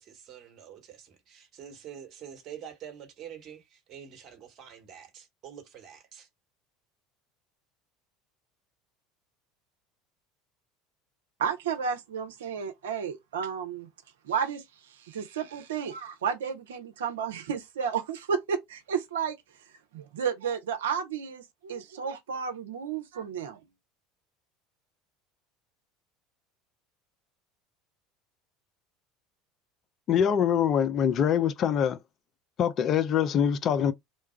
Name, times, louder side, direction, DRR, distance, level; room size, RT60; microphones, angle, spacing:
voice 1, 0.0-6.3, right 9 dB, 45° right, 1.1 m, -46 dB
voice 2, 11.4-13.9 14.2-14.6 15.0-19.3 19.9-23.6, right 7 dB, 70° right, 0.6 m, -32 dB
voice 3, 30.1-32.0 32.6-33.9, left 8 dB, 40° left, 0.4 m, -24 dB
3.1 x 2.3 x 4.3 m
figure-of-eight pair, 70°, 0 cm